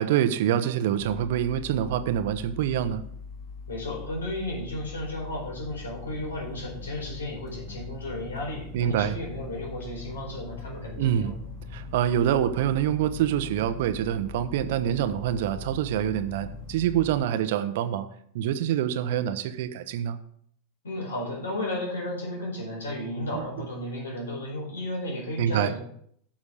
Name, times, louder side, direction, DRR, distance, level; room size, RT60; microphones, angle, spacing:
voice 1, 0.0-3.0 8.7-9.2 11.0-11.3 11.7-18.1 18.3-20.2 23.3-23.5 25.4-25.7, right 10 dB, 60° right, 11 dB, 0.8 m, -26 dB
sound 1, 1.0-17.2, left 4 dB, 40° left, 2.9 m, -41 dB
voice 2, 3.7-11.4 20.8-25.8, left 1 dB, 80° left, -1 dB, 4.5 m, -34 dB
9.8 x 6.2 x 4.9 m, 0.66 s
figure-of-eight pair, 85°, 0 cm